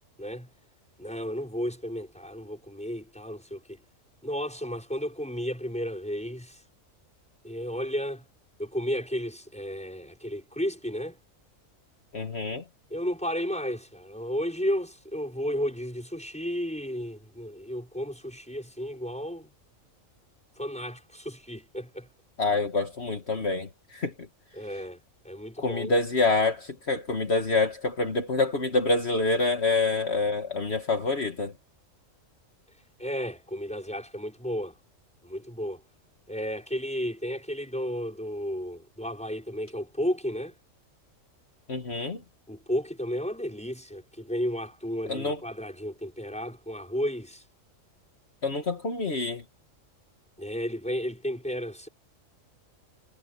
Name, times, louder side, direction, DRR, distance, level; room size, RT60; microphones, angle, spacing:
voice 1, 1.0-3.8 4.2-6.6 7.4-8.2 8.6-11.2 12.9-19.5 20.6-22.1 24.5-25.9 33.0-34.7 35.2-35.8 36.3-40.6 42.5-47.4 50.4-51.9, equal, 5° left, 5.9 m, -33 dB
voice 2, 12.1-12.6 22.4-24.1 25.6-31.5 41.7-42.2 45.1-45.4 48.4-49.4, left 3 dB, 55° left, 2.0 m, -26 dB
omnidirectional pair, 1.4 m